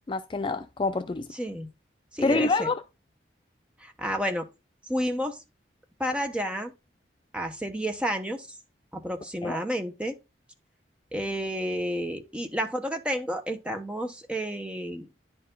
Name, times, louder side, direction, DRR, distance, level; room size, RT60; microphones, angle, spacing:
voice 1, 0.1-1.3 2.2-2.8 9.4-9.6, left 3 dB, 25° left, 0.3 m, -26 dB
voice 2, 1.3-1.7 2.1-2.7 3.8-4.5 4.9-5.4 6.0-6.7 7.3-8.5 8.9-10.1 11.1-15.1, equal, 5° right, 0.9 m, -30 dB
10.0 x 4.5 x 3.8 m
head